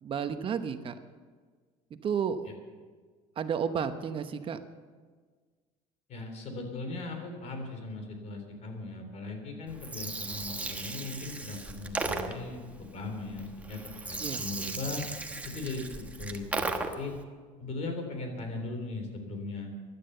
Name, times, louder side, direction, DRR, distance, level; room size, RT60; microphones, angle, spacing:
voice 1, 0.0-1.0 2.0-2.5 3.4-4.6 14.2-14.4, right 7 dB, 35° right, 9 dB, 0.9 m, -32 dB
voice 2, 6.1-13.8 14.1-15.0 15.4-15.9 16.2-16.7 17.0-17.2 17.6-19.7, left 3 dB, 45° left, 5 dB, 3.5 m, -38 dB
Gurgling, 9.7-17.2, right 2 dB, 10° right, 1.1 m, -37 dB
16.0 x 12.0 x 6.8 m, 1.5 s
cardioid pair, 135°, 15 cm